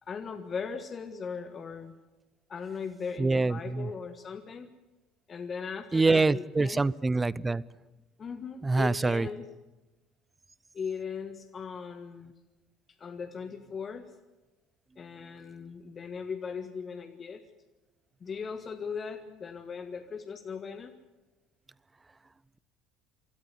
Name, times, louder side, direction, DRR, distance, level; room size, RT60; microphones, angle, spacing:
voice 1, 0.0-1.9 2.5-4.7 5.3-6.8 8.2-9.5 10.7-12.3 13.0-14.1 15.0-17.4 18.2-20.9, left 6 dB, 40° left, 7 dB, 1.6 m, -38 dB
voice 2, 3.2-3.9 5.9-7.6 8.6-9.3, right 3 dB, 20° right, 22 dB, 0.6 m, -25 dB
25.5 x 13.5 x 9.8 m, 1.1 s
hypercardioid pair, 60°, 0 cm